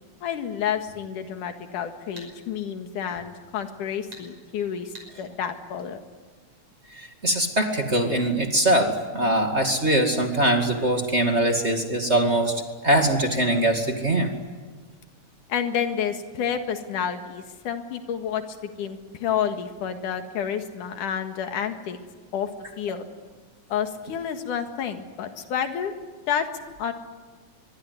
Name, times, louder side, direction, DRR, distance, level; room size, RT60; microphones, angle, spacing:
voice 1, 0.2-6.0 15.5-22.0 22.3-22.5 22.8-23.1 23.7-25.9 26.3-26.5 26.8-26.9, left 8 dB, 90° left, 7 dB, 3.3 m, -29 dB
sound 1, 2.2-2.3 4.1-4.3 5.0-5.1, right 1 dB, 55° right, 6.7 m, -42 dB
voice 2, 6.9-14.3, right 1 dB, 25° right, 3 dB, 2.2 m, -22 dB
24.0 x 23.5 x 9.6 m, 1.4 s
omnidirectional pair, 3.5 m